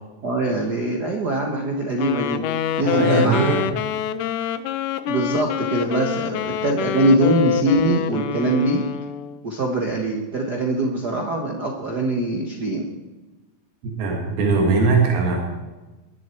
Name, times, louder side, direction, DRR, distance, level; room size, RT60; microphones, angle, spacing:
voice 1, 0.2-2.4 2.8-3.8 5.1-8.8 9.4-12.9, right 1 dB, 70° right, 1 dB, 0.9 m, -22 dB
Wind instrument woodwind instrument, 2.0-9.4, left 10 dB, 75° left, 2.0 m, -26 dB
voice 2, 2.8-3.7 13.8-15.4, right 4 dB, 90° right, 1 dB, 3.8 m, -20 dB
22.0 x 11.5 x 4.5 m, 1.1 s
omnidirectional pair, 4.2 m